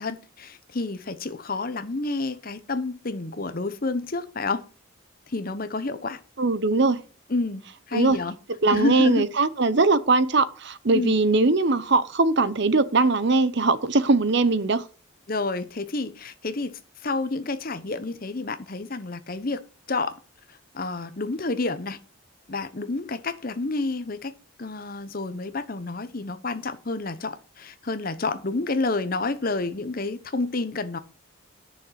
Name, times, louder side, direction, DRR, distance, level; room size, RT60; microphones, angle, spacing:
voice 1, 0.0-4.7 5.3-6.2 7.3-7.6 7.9-8.3 8.7-9.2 10.9-11.1 15.3-19.6 19.9-20.2 20.7-22.0 22.5-24.3 24.6-31.0, left 3 dB, 45° left, 0.9 m, -29 dB
voice 2, 6.4-7.0 7.9-8.2 8.6-14.8, right 3 dB, 55° right, 0.9 m, -21 dB
9.3 x 6.6 x 5.8 m
head